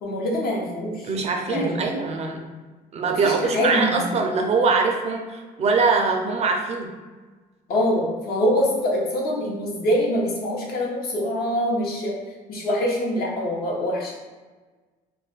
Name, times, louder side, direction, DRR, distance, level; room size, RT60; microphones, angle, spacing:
voice 1, 0.0-1.1 1.4-1.8 3.1-4.1 7.7-12.2 12.5-14.1, equal, 65° left, -3 dB, 0.9 m, -24 dB
voice 2, 1.1-2.5 2.9-6.9, right 4 dB, 40° right, 3 dB, 0.4 m, -23 dB
2.4 x 2.1 x 3.8 m, 1.3 s
cardioid pair, 110°, 17 cm